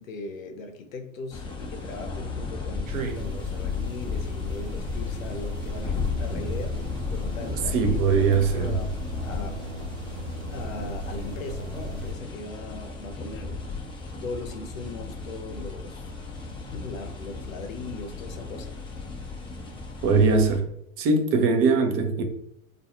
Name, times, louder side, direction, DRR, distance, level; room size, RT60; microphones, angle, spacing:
voice 1, 0.0-6.8 7.1-9.6 10.5-13.6 14.2-16.1 16.5-18.8, left 3 dB, 75° left, 0.7 m, -39 dB
sound 1, 1.3-20.6, left 4 dB, 10° left, 0.6 m, -34 dB
sound 2, 2.9-12.1, right 2 dB, 75° right, 0.7 m, -38 dB
voice 2, 7.7-8.7 20.0-20.7 21.0-22.2, right 4 dB, 35° right, 0.6 m, -21 dB
2.5 x 2.3 x 2.9 m
figure-of-eight pair, 90°, 40 cm